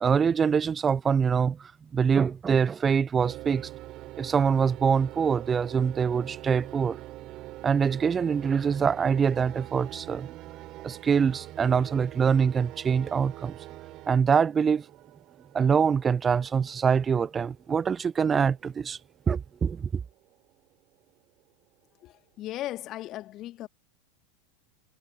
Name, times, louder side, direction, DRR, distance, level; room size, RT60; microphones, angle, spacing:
voice 1, 0.0-3.7 4.2-7.0 7.6-10.3 10.8-13.6 14.1-14.8 15.5-19.0 19.3-19.9, right 6 dB, 25° right, 0.3 m, -24 dB
sound 1, 3.2-21.4, right 17 dB, 45° right, 3.3 m, -45 dB
voice 2, 22.0-23.7, left 14 dB, 40° left, 1.6 m, -37 dB
figure-of-eight pair, 85°, 0 cm